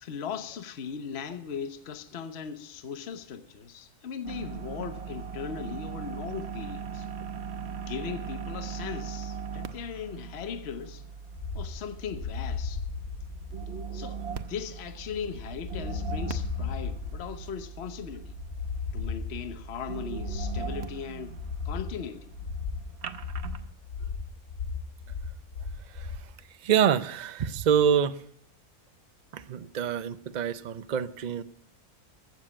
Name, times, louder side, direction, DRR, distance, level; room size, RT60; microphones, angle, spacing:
voice 1, 0.0-7.1 7.7-11.0 11.5-12.8 13.9-18.4 18.9-21.4 21.6-22.3, left 7 dB, 50° left, 1.1 m, -38 dB
sound 1, 4.2-23.7, right 6 dB, 50° right, 1.0 m, -40 dB
sound 2, 11.4-26.3, left 5 dB, 85° left, 2.7 m, -36 dB
voice 2, 26.6-28.2 29.3-31.4, right 8 dB, 80° right, 0.4 m, -26 dB
15.0 x 7.5 x 8.6 m
omnidirectional pair, 1.6 m